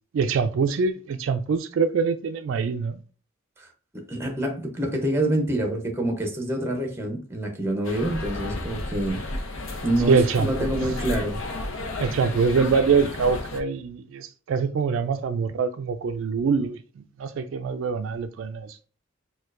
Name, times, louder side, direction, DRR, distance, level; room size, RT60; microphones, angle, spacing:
voice 1, 0.1-3.0 10.1-10.7 12.0-16.8 17.2-18.8, right 5 dB, 65° right, 0.3 m, -24 dB
voice 2, 3.9-9.2 9.8-11.4, right 1 dB, 10° right, 0.7 m, -26 dB
sound 1, 7.8-13.6, left 2 dB, 70° left, 0.7 m, -32 dB
4.4 x 2.3 x 2.5 m
head